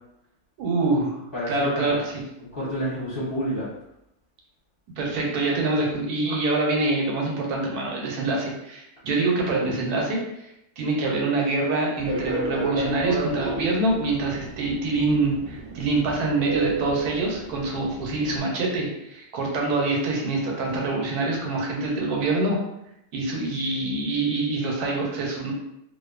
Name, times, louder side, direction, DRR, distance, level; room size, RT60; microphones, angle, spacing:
voice 1, 0.6-1.2 1.5-2.1 5.0-10.2 10.8-22.6 23.1-25.5, right 2 dB, 85° right, -1 dB, 1.1 m, -25 dB
voice 2, 1.3-2.0 2.4-3.7, equal, 45° left, -8 dB, 0.9 m, -29 dB
Fixed-wing aircraft airplane, 12.0-18.4, right 2 dB, 45° right, 0.8 m, -32 dB
2.5 x 2.4 x 2.3 m, 0.83 s
omnidirectional pair, 1.6 m